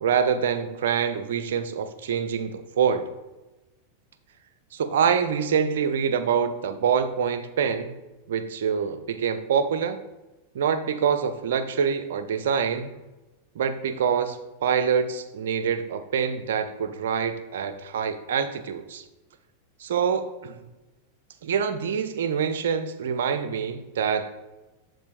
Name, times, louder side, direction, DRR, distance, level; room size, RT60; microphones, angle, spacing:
voice 1, 0.0-3.0 4.7-8.0 8.3-10.0 10.5-12.9 13.6-19.0 19.8-20.6 21.4-24.3, right 7 dB, 60° right, 10 dB, 0.5 m, -25 dB
11.5 x 3.8 x 2.5 m, 1.1 s
figure-of-eight pair, 90°, 0 cm